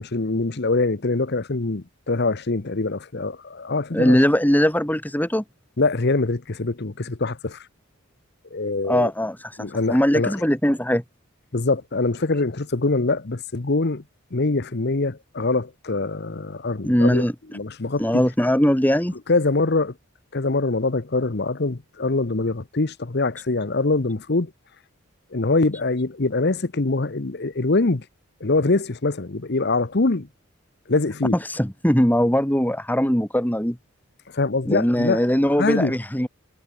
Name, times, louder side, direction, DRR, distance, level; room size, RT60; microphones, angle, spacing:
voice 1, 0.0-4.2 5.8-7.7 8.5-9.1 9.6-10.4 11.5-14.0 14.3-17.2 17.5-18.2 19.3-19.9 20.3-24.5 25.3-28.0 28.4-30.3 30.9-31.4 34.3-35.2 35.6-36.0, left 3 dB, 50° left, 0.9 m, -23 dB
voice 2, 3.9-5.4 8.9-9.4 9.9-11.0 16.8-17.3 18.0-19.1 31.5-33.8 34.7-36.3, equal, 10° left, 2.3 m, -20 dB
head